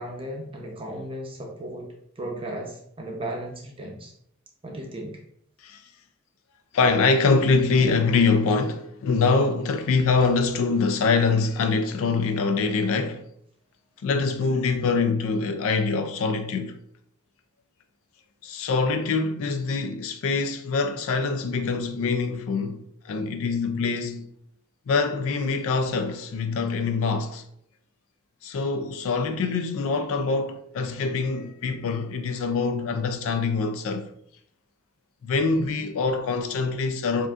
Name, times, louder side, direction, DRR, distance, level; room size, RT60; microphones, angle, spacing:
voice 1, 0.0-4.1 4.6-5.2, right 1 dB, 25° right, 0.7 m, -35 dB
voice 2, 6.7-13.2 14.0-16.8 18.4-24.3 24.9-27.4 28.4-34.1 35.2-37.3, left 4 dB, 65° left, 0.4 m, -24 dB
7.2 x 2.6 x 2.4 m
head